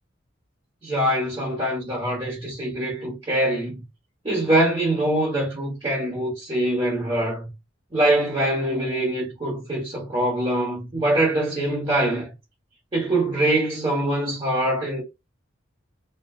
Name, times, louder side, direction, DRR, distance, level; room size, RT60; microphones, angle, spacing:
voice 1, 0.8-3.8 4.2-7.5 7.9-12.3 12.9-15.0, right 1 dB, 25° right, 1.0 m, -23 dB
2.5 x 2.1 x 3.5 m
head